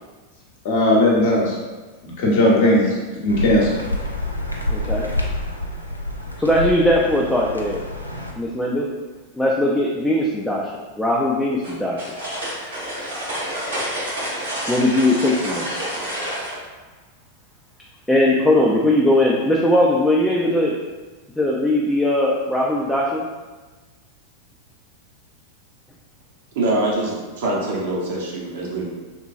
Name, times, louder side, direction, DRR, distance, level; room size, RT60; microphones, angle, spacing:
voice 1, 0.6-1.5 2.0-2.8 3.2-3.7, left 1 dB, 50° left, -4 dB, 0.7 m, -17 dB
voice 2, 2.4-2.8 4.7-5.1 6.4-7.8 8.4-8.9 9.3-10.7 11.0-12.0 14.7-15.7 18.1-20.8 21.4-23.3, left 1 dB, 5° left, -3 dB, 0.3 m, -19 dB
sound 1, 3.3-8.3, left 1 dB, 90° left, 0.3 m, -27 dB
sound 2, 11.6-16.6, equal, 70° right, 1.0 m, -28 dB
voice 3, 26.6-28.9, right 2 dB, 55° right, -3 dB, 0.7 m, -24 dB
3.0 x 2.2 x 2.6 m, 1.3 s
figure-of-eight pair, 90°, 0 cm